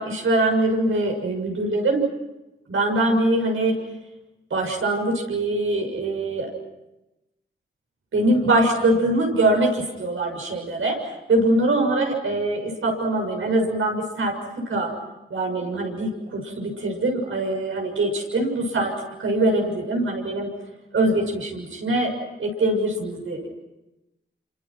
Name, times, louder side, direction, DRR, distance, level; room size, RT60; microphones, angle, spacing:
voice 1, 0.0-2.0 2.7-3.8 4.5-6.5 8.1-14.3 14.7-14.9 15.3-18.9 19.2-20.5 20.9-22.1 22.4-23.5, right 2 dB, 85° right, 1 dB, 7.0 m, -23 dB
28.5 x 27.5 x 6.1 m, 0.99 s
cardioid pair, 50°, 21 cm